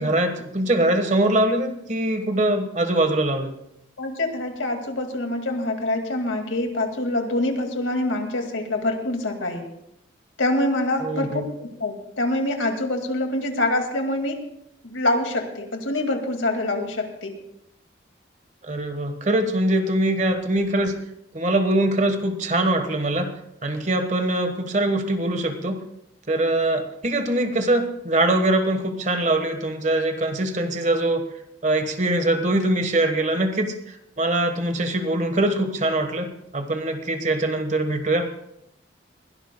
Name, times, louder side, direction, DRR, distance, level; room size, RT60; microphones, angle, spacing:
voice 1, 0.0-3.5 11.0-11.5 18.6-21.0 21.3-23.3 23.6-25.8 26.3-31.2 31.6-38.3, right 1 dB, 40° right, 7 dB, 1.4 m, -23 dB
voice 2, 4.0-9.6 10.4-14.4 14.8-17.5, left 1 dB, 90° left, 4 dB, 2.2 m, -25 dB
21.5 x 17.0 x 2.3 m, 0.77 s
head